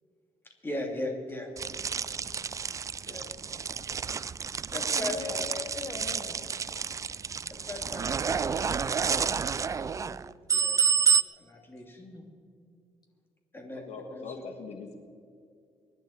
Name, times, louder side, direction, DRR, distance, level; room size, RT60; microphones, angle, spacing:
voice 1, 0.6-1.5 3.0-3.3 4.7-5.6 7.5-9.5 10.5-10.8 11.4-12.0 13.5-13.8 14.1-14.4, left 1 dB, 20° left, 2 dB, 2.5 m, -38 dB
sound 1, 1.6-11.2, right 6 dB, 30° right, 0.3 m, -29 dB
voice 2, 4.7-6.4 8.1-8.2 9.5-10.2 12.0-12.3, left 4 dB, 40° left, 2 dB, 2.8 m, -42 dB
voice 3, 13.7-14.9, left 4 dB, 85° left, 6 dB, 1.4 m, -41 dB
24.0 x 11.5 x 4.4 m, 2.3 s
cardioid pair, 110°, 11 cm